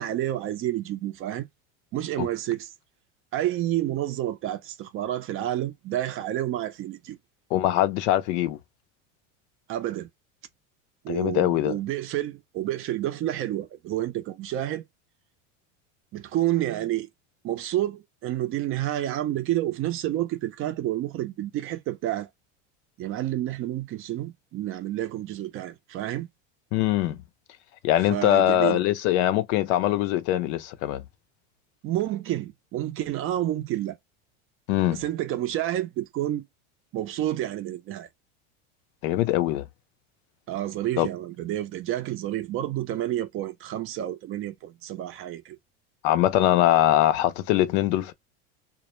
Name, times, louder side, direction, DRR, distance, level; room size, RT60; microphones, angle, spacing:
voice 1, 0.0-1.5 1.9-2.7 3.3-7.2 9.7-10.1 11.0-14.8 16.1-17.1 17.4-22.3 23.0-26.3 28.0-28.8 31.8-34.0 34.9-36.4 36.9-38.1 40.5-45.6, right 13 dB, 35° right, 0.5 m, -29 dB
voice 2, 7.5-8.6 11.1-11.8 26.7-27.2 27.8-31.0 34.7-35.0 39.0-39.6 41.0-41.1 46.0-48.1, left 13 dB, 65° left, 0.6 m, -22 dB
2.1 x 2.1 x 3.0 m
supercardioid pair, 120°, 36 cm